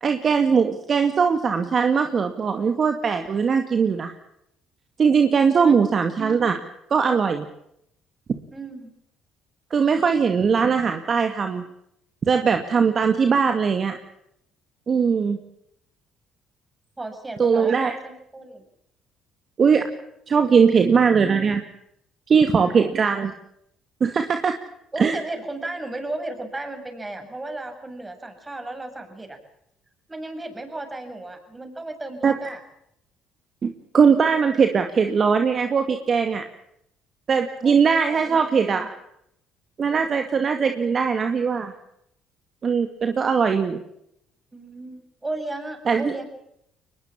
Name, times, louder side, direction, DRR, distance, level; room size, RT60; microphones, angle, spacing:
voice 1, 0.0-4.1 5.0-6.6 6.9-7.5 9.7-11.6 12.2-14.0 14.9-15.4 17.4-17.9 19.6-19.9 20.3-21.6 22.3-23.3 24.0-24.6 25.0-25.2 32.2-32.3 33.6-36.4 37.3-38.9 39.8-41.7 42.6-43.8 45.9-46.1, right 6 dB, 45° right, 6 dB, 2.2 m, -20 dB
voice 2, 8.5-8.9 17.0-18.6 22.6-22.9 24.9-29.4 30.1-32.6 37.6-38.9 44.5-46.3, right 2 dB, 20° right, 6 dB, 7.4 m, -35 dB
23.5 x 20.5 x 7.4 m, 0.76 s
supercardioid pair, 65°, 0 cm